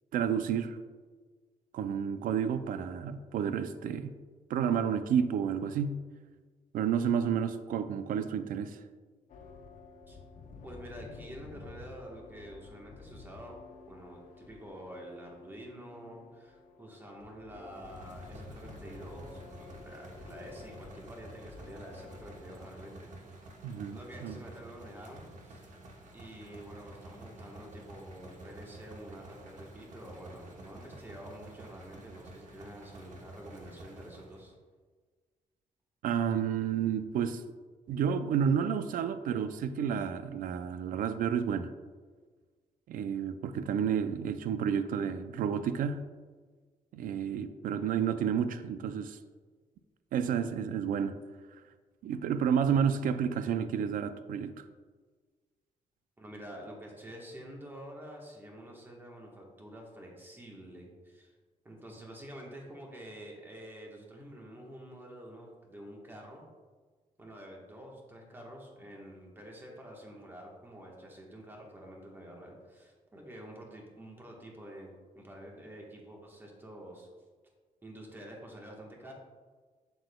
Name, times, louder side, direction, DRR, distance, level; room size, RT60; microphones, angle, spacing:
voice 1, 0.1-0.8 1.7-4.1 4.5-6.0 6.7-8.8 23.6-24.4 36.0-37.4 37.9-41.7 42.9-46.0 46.9-49.2 50.1-51.1 52.0-54.6, right 7 dB, 85° right, 11 dB, 0.4 m, -30 dB
sound 1, 9.3-22.8, left 4 dB, 75° left, 0.6 m, -51 dB
voice 2, 10.6-13.6 13.9-23.1 23.9-25.7 26.1-34.5 56.2-61.3 61.6-66.5 67.2-74.9 75.1-77.1 77.8-79.1, right 1 dB, 15° right, -1 dB, 1.2 m, -48 dB
sound 2, 17.6-34.5, right 2 dB, 65° right, 1.0 m, -50 dB
7.6 x 6.9 x 2.2 m, 1.4 s
wide cardioid pair, 160°, 14 cm